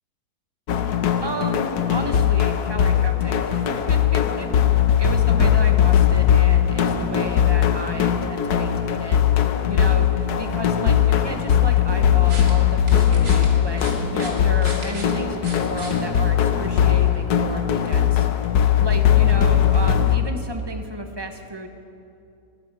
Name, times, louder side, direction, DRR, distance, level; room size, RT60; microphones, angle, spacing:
sound 1, 0.7-20.2, left 9 dB, 85° left, 1.3 m, -19 dB
voice 1, 1.2-4.7 5.0-9.2 9.7-18.4 18.8-21.7, right 2 dB, 20° right, 5 dB, 1.0 m, -33 dB
sound 2, 11.9-16.8, right 1 dB, 70° right, 2.7 m, -37 dB
20.0 x 14.5 x 4.9 m, 2.7 s
omnidirectional pair, 1.6 m